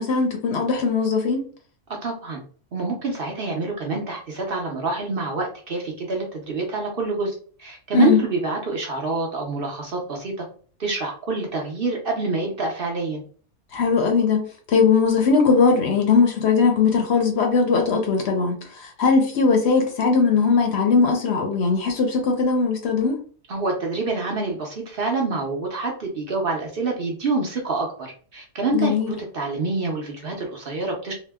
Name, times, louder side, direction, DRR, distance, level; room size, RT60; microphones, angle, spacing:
voice 1, 0.0-1.4 7.9-8.2 13.7-14.4 14.7-23.2 28.7-29.1, left 5 dB, 60° left, 0.8 m, -19 dB
voice 2, 2.0-2.4 2.7-7.3 7.6-10.4 10.8-13.2 23.5-31.1, right 3 dB, 55° right, 0.7 m, -27 dB
2.8 x 2.0 x 3.4 m
omnidirectional pair, 1.4 m